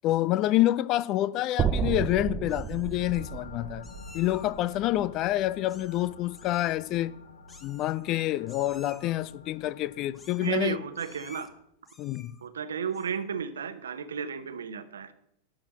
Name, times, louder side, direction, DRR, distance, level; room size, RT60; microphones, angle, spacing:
voice 1, 0.0-3.9 4.1-7.2 7.6-10.8 12.0-12.3, left 15 dB, 40° left, 0.4 m, -27 dB
sound 1, 1.6-5.8, right 8 dB, 25° right, 0.5 m, -32 dB
Meow, 1.7-2.1 2.5-3.2 3.8-4.6 5.7-6.1 6.3-6.8 7.5-8.2 8.5-9.2 10.1-10.6 10.9-11.5 11.8-12.4 12.9-13.3, left 3 dB, 15° left, 1.0 m, -53 dB
sound 2, 3.0-11.6, left 4 dB, 70° left, 0.8 m, -50 dB
voice 2, 10.4-11.5 12.4-15.1, right 7 dB, 65° right, 0.9 m, -33 dB
11.5 x 4.9 x 7.4 m
figure-of-eight pair, 90°, 0 cm